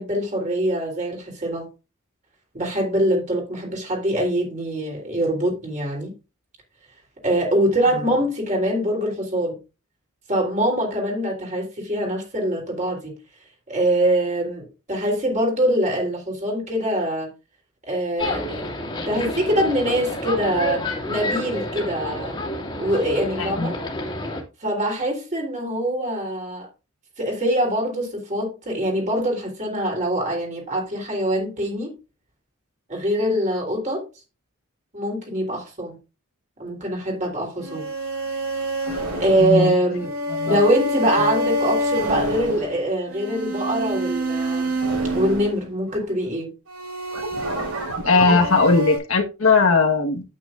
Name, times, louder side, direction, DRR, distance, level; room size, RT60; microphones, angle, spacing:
voice 1, 0.0-1.7 2.5-6.1 7.2-9.6 10.3-13.2 13.7-17.3 17.9-18.6 19.1-22.4 22.8-23.8 24.6-26.7 27.2-32.0 32.9-34.0 34.9-36.0 36.6-37.9 39.1-40.1 40.4-44.7 45.1-46.5, right 1 dB, 35° right, 3.5 m, -23 dB
sound 1, 18.2-24.4, left 1 dB, 20° left, 2.2 m, -29 dB
voice 2, 23.4-23.7 39.4-39.7 40.3-40.6 48.0-50.3, left 4 dB, 70° left, 1.5 m, -19 dB
sound 2, 37.6-46.1 46.7-49.0, right 1 dB, 85° right, 5.0 m, -26 dB
9.0 x 8.8 x 2.5 m
head